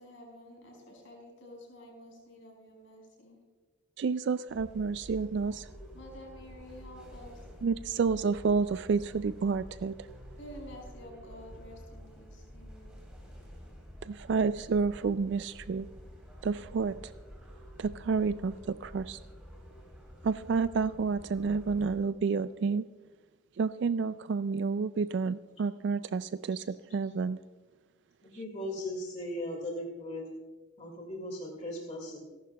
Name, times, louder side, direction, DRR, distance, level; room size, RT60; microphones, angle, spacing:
voice 1, 0.0-3.4 5.9-7.4 10.4-12.9, equal, 65° left, 0 dB, 5.0 m, -50 dB
voice 2, 4.0-5.7 7.6-9.9 14.0-15.9 16.4-16.9 17.8-19.2 20.2-22.8 23.6-27.4, right 5 dB, 55° right, 13 dB, 0.3 m, -30 dB
sound 1, 4.5-21.9, equal, 5° right, 3.6 m, -49 dB
voice 3, 28.3-30.2 30.8-32.2, left 1 dB, 35° left, 0 dB, 2.0 m, -38 dB
28.5 x 11.5 x 2.2 m, 1.3 s
head